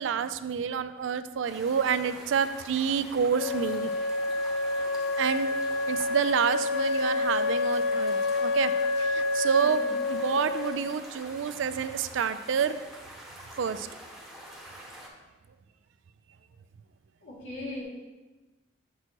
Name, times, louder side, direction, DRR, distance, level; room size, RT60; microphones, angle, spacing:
voice 1, 0.0-3.9 5.2-5.5 5.9-8.7 9.0-12.8 13.6-13.9, right 7 dB, 75° right, 11 dB, 0.4 m, -28 dB
sound 1, 1.5-15.1, right 1 dB, ahead, 1.0 m, -46 dB
Wind instrument woodwind instrument, 3.3-11.0, left 3 dB, 65° left, 0.4 m, -28 dB
voice 2, 9.6-9.9 17.2-17.8, left 1 dB, 80° left, -5 dB, 2.2 m, -39 dB
7.4 x 6.1 x 2.9 m, 1.1 s
head